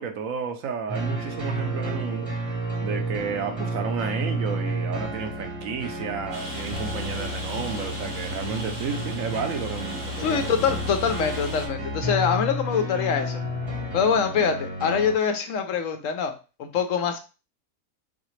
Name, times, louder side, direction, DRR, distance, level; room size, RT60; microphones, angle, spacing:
voice 1, 0.0-2.3 2.8-10.6, right 6 dB, 70° right, 5 dB, 1.0 m, -32 dB
sound 1, 0.9-15.1, equal, 30° right, 0.8 m, -31 dB
Rain, 6.3-11.7, right 1 dB, 85° right, 2.1 m, -38 dB
voice 2, 10.2-13.4 13.9-16.3 16.6-17.2, left 6 dB, 70° left, 7 dB, 0.9 m, -24 dB
4.1 x 3.8 x 3.1 m, 0.32 s
omnidirectional pair, 1.5 m